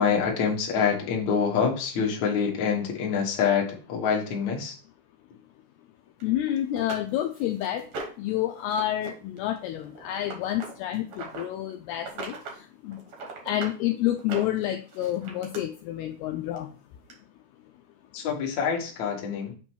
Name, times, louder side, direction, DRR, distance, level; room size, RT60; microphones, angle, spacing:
voice 1, 0.0-4.8 18.1-19.5, left 6 dB, 65° left, -1 dB, 1.9 m, -26 dB
voice 2, 6.2-7.9 8.2-13.0 13.4-16.7, left 12 dB, 80° left, 5 dB, 2.3 m, -29 dB
sound 1, 6.2-6.3 6.8-8.3 8.7-9.1 9.4-11.5 12.0-12.6 12.9-13.8 14.2-15.6 16.6-16.7 17.1-17.2, right 3 dB, 80° right, 1.3 m, -39 dB
7.8 x 2.9 x 4.4 m, 0.38 s
omnidirectional pair, 4.8 m